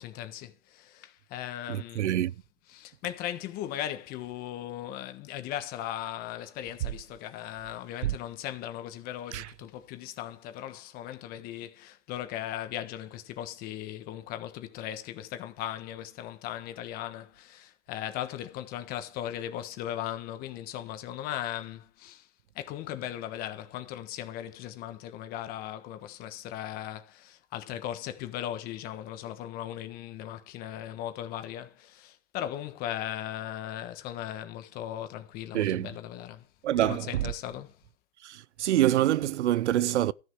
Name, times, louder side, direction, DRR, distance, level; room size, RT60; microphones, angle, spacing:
voice 1, 0.0-2.1 2.7-22.3 22.5-36.5 36.8-37.8, left 12 dB, 25° left, 1.4 m, -38 dB
voice 2, 1.7-2.3 8.0-8.1 9.3-9.5 35.5-35.9 36.6-37.3 38.2-40.1, right 13 dB, 70° right, 0.5 m, -26 dB
13.5 x 6.6 x 4.7 m
hypercardioid pair, 145°, 36 cm